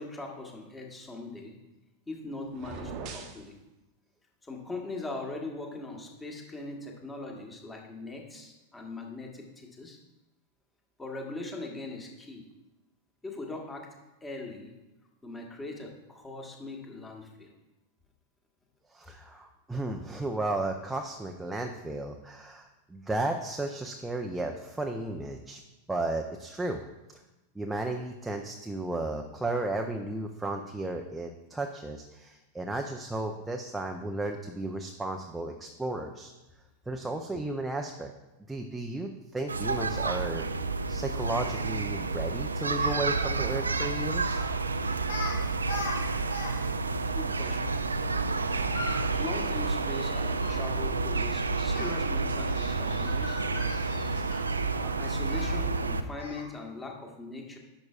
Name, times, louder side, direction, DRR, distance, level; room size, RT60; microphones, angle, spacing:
voice 1, 0.0-1.6 2.1-3.5 4.4-10.0 11.0-12.4 13.2-13.9 14.2-14.7 15.2-17.5 47.1-47.6 49.2-53.4 54.7-57.6, left 2 dB, 15° left, 1 dB, 1.4 m, -40 dB
sound 1, 2.5-3.4, right 5 dB, 40° right, 0.9 m, -40 dB
voice 2, 18.9-25.6 25.9-26.8 27.1-27.2 27.5-36.3 36.9-38.1 38.5-40.5 40.9-44.5, right 2 dB, 5° right, 2 dB, 0.5 m, -34 dB
sound 2, 39.5-56.0, right 3 dB, 75° right, 0.4 m, -30 dB
Speech, 42.8-43.0 44.3-44.6 45.0-45.4 45.6-46.5 46.8-46.9 48.5-50.6 51.7-51.9 52.5-54.6 55.3-55.5 56.2-56.5, left 2 dB, 70° left, 1.3 m, -40 dB
10.5 x 6.2 x 2.4 m, 1.0 s
figure-of-eight pair, 90°, 0 cm